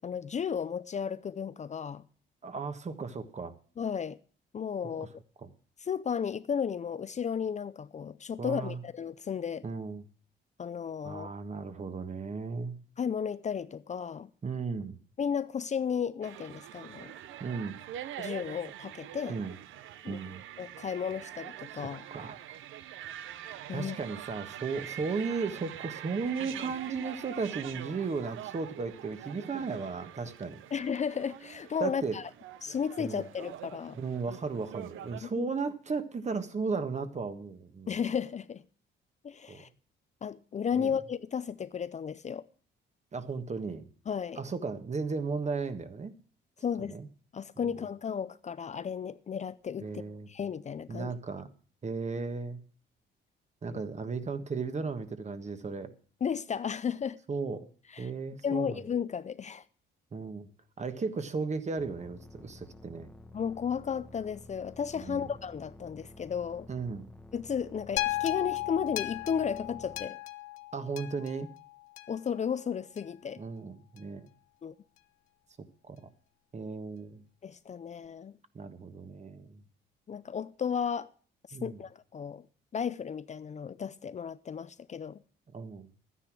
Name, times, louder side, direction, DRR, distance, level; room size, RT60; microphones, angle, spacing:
voice 1, 0.0-2.0 3.8-4.2 4.5-5.1 5.8-9.6 10.6-11.3 13.0-14.3 15.2-17.1 18.2-19.4 20.0-20.2 20.6-22.0 23.7-24.0 30.7-32.2 32.6-34.0 35.2-35.5 37.9-38.6 39.2-39.7 40.2-42.5 44.1-44.4 46.6-47.0 47.3-49.9 50.3-51.1 53.7-53.8 56.2-57.2 57.9-58.1 58.4-59.6 63.3-66.7 67.3-70.2 72.1-73.4 74.6-74.7 77.4-78.4 80.1-81.1 81.6-82.4 82.7-85.2, left 7 dB, 35° left, 0.5 m, -34 dB
voice 2, 2.4-3.5 5.0-5.1 5.4-5.5 8.4-8.8 9.6-10.0 11.0-12.8 14.4-15.0 17.4-17.8 19.3-19.6 20.1-20.4 22.1-22.4 23.7-30.6 31.8-32.2 33.0-33.3 33.9-37.9 39.5-39.6 40.7-40.9 43.1-43.8 44.4-46.1 46.9-47.1 47.6-47.7 49.8-50.3 50.9-51.5 51.8-52.6 53.6-55.9 57.3-57.7 58.0-58.8 60.1-60.5 60.8-63.1 65.1-65.3 66.7-67.1 70.7-71.5 73.4-74.3 75.8-76.1 76.5-77.2 78.5-79.6 81.5-81.8 85.5-85.9, right 4 dB, 35° right, 1.4 m, -35 dB
sound 1, 16.2-35.2, right 11 dB, 80° right, 0.7 m, -44 dB
sound 2, 61.8-70.1, left 2 dB, 5° left, 1.0 m, -51 dB
sound 3, 68.0-72.3 73.0-73.1, left 17 dB, 85° left, 0.7 m, -35 dB
12.0 x 9.9 x 6.1 m
cardioid pair, 90°, 20 cm